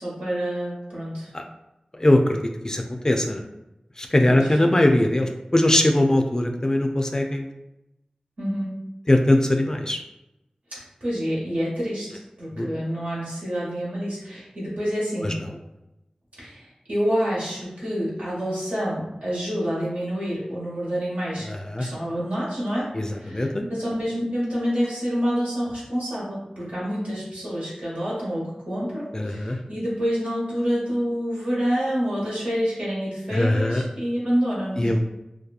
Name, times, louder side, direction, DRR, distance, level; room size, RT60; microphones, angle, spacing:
voice 1, 0.0-1.3 4.2-4.5 8.4-8.8 10.7-12.1 12.4-15.4 16.4-21.5 21.8-34.9, equal, 80° right, -7 dB, 1.2 m, -27 dB
voice 2, 1.9-3.4 4.0-7.5 9.1-10.0 12.6-12.7 15.2-15.3 21.4-21.9 22.9-23.6 29.1-29.6 33.3-33.8 34.8-35.0, left 1 dB, 25° left, 3 dB, 0.3 m, -21 dB
2.8 x 2.2 x 2.3 m, 0.91 s
wide cardioid pair, 45°, 2 cm